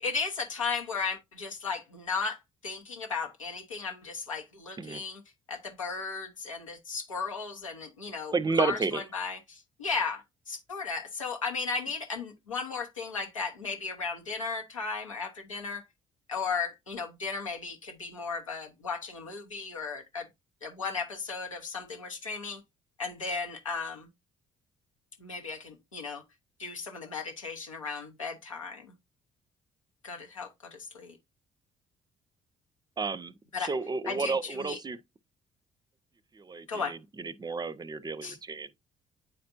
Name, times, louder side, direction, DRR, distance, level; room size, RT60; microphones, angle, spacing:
voice 1, 0.0-5.2 5.5-15.8 16.3-20.3 20.6-22.6 23.0-24.1 25.2-26.2 26.6-28.9 30.0-31.2 33.5-33.7 34.0-34.8 36.7-36.9 38.2-38.4, left 5 dB, 90° left, 0.9 m, -35 dB
voice 2, 8.3-9.0 33.0-33.3 33.6-35.0 36.3-38.7, right 4 dB, 25° right, 0.5 m, -31 dB
9.2 x 4.3 x 2.5 m
figure-of-eight pair, 45°, 16 cm